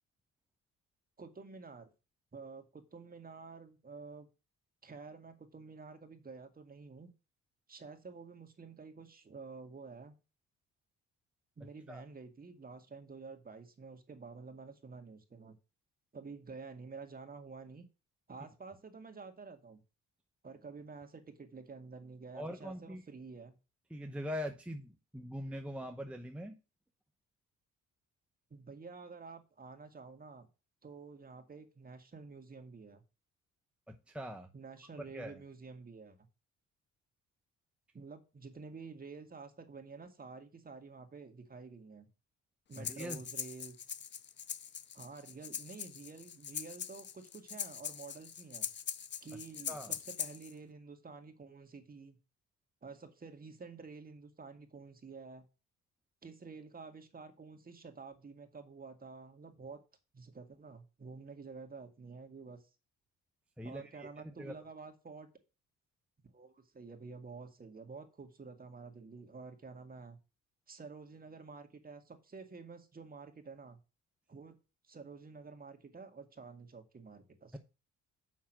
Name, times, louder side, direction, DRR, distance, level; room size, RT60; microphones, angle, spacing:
voice 1, 1.2-1.9 2.3-4.3 4.8-7.1 7.7-10.2 11.6-15.6 16.1-17.8 18.3-19.8 20.4-23.6 28.5-30.5 30.8-33.0 34.5-36.2 37.9-42.1 42.7-43.8 44.9-48.7 49.2-52.2 52.8-55.5 56.2-59.8 60.1-62.6 63.6-65.3 66.3-70.2 70.7-73.8 74.3-74.6 74.8-77.6, right 4 dB, 30° right, 6 dB, 1.9 m, -50 dB
voice 2, 22.3-23.0 23.9-26.5 33.9-34.5 34.8-34.9 35.1-35.4 42.8-43.2 49.7-49.9 63.6-64.5 77.5-77.6, equal, 5° right, 4 dB, 0.9 m, -42 dB
Breathing, 42.7-50.5, left 8 dB, 35° left, 0.6 m, -42 dB
7.3 x 5.8 x 6.1 m, 0.30 s
cardioid pair, 90°, 30 cm